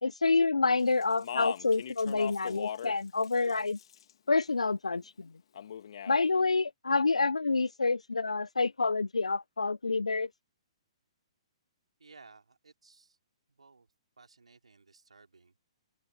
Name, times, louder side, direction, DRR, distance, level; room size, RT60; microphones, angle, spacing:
voice 1, 0.0-3.8 4.3-5.3 6.1-10.3, left 3 dB, 85° left, 0.4 m, -28 dB
Speech, 1.0-3.0 3.2-4.1 5.5-6.2, left 9 dB, 60° left, 2.0 m, -39 dB
voice 2, 12.0-13.2 13.5-13.9 14.2-15.7, right 4 dB, 80° right, 3.9 m, -58 dB
open air
figure-of-eight pair, 125°, 3 cm